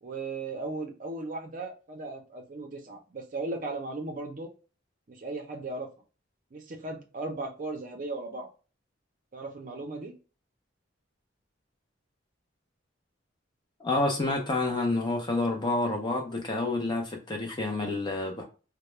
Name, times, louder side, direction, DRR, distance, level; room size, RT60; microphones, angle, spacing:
voice 1, 0.0-4.5 5.1-5.9 6.5-8.5 9.3-10.1, right 2 dB, 45° right, 3 dB, 0.5 m, -37 dB
voice 2, 13.8-18.4, left 2 dB, 25° left, 2 dB, 0.5 m, -28 dB
2.2 x 2.0 x 2.9 m, 0.34 s
head